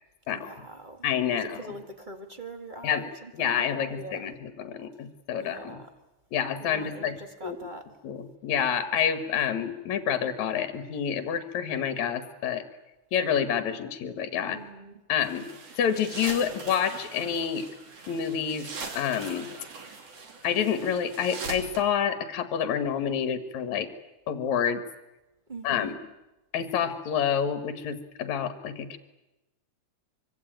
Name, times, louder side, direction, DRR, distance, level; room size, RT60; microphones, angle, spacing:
voice 1, 0.3-1.1 1.3-4.3 5.4-5.9 6.6-7.9 14.5-14.9 25.5-25.9, right 2 dB, 20° right, 6 dB, 1.7 m, -42 dB
voice 2, 1.0-1.6 2.8-3.0 3.4-5.8 6.3-7.2 7.4-7.6 8.0-12.6 13.1-14.6 15.1-15.5 15.8-17.7 18.1-18.7 19.0-19.5 20.4-23.9 24.3-24.8 25.6-26.0 26.5-29.0, left 8 dB, 70° left, 10 dB, 2.6 m, -28 dB
sound 1, 15.2-21.8, right 4 dB, 55° right, 3.9 m, -41 dB
24.5 x 24.5 x 9.1 m, 1.0 s
omnidirectional pair, 3.5 m